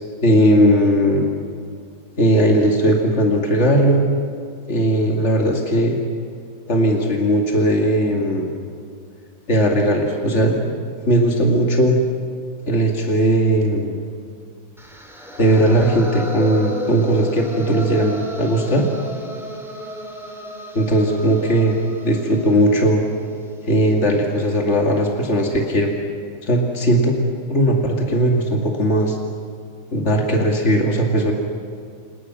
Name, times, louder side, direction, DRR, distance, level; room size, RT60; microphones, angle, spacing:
voice 1, 0.2-1.3 2.2-4.0 4.7-6.0 6.7-8.6 9.5-10.7 11.0-12.0 12.7-14.0 15.4-18.9 20.7-21.7 22.0-23.0 23.7-25.9 26.4-27.2 27.5-29.2 29.9-31.3, right 1 dB, 45° left, 0 dB, 0.9 m, -18 dB
sound 1, 14.8-24.8, equal, ahead, 2.6 m, -33 dB
29.5 x 28.0 x 6.3 m, 2.1 s
omnidirectional pair, 5.4 m